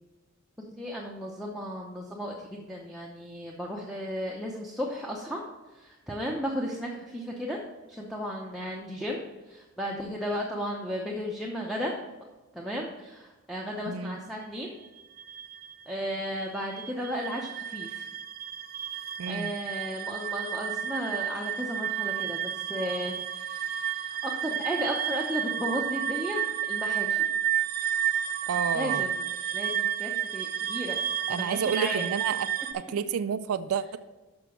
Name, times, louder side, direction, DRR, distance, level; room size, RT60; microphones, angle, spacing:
voice 1, 0.6-5.4 5.7-7.6 7.9-11.9 12.5-14.7 15.9-18.1 18.9-27.3 28.5-31.0 31.3-32.0, equal, ahead, -3 dB, 0.7 m, -35 dB
voice 2, 13.9-14.2 19.2-19.5 28.5-29.1 31.3-32.5 32.7-34.0, right 7 dB, 90° right, 11 dB, 0.4 m, -30 dB
sound 1, 14.8-32.7, right 10 dB, 45° right, 0.6 m, -31 dB
6.7 x 6.0 x 5.9 m, 1.1 s
head